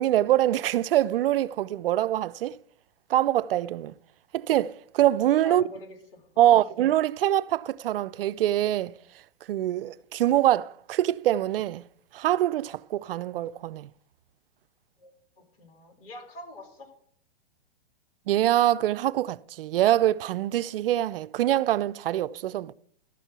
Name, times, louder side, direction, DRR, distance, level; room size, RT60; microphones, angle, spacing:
voice 1, 0.0-2.6 3.1-3.9 4.3-5.6 6.4-8.9 9.5-11.8 12.1-13.9 18.3-22.7, right 13 dB, 70° right, 0.5 m, -24 dB
voice 2, 5.4-6.6 15.0-16.9, left 2 dB, 70° left, 4.5 m, -45 dB
12.5 x 4.4 x 8.0 m
hypercardioid pair, 130°, 30 cm